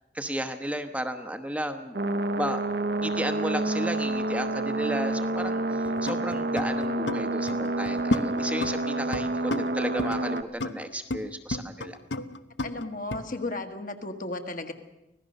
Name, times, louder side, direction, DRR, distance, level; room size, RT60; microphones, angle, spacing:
voice 1, 0.1-2.0 2.4-2.6 3.0-12.0, right 1 dB, 5° right, 6 dB, 1.0 m, -33 dB
sound 1, 1.9-10.4, right 2 dB, 55° right, 1.0 m, -28 dB
sound 2, 5.6-7.2 7.5-9.2 9.5-11.2 11.5-13.2, left 2 dB, 75° left, 1.0 m, -32 dB
voice 2, 12.6-14.7, left 2 dB, 45° left, 5 dB, 1.6 m, -34 dB
25.0 x 17.0 x 6.6 m, 0.93 s
head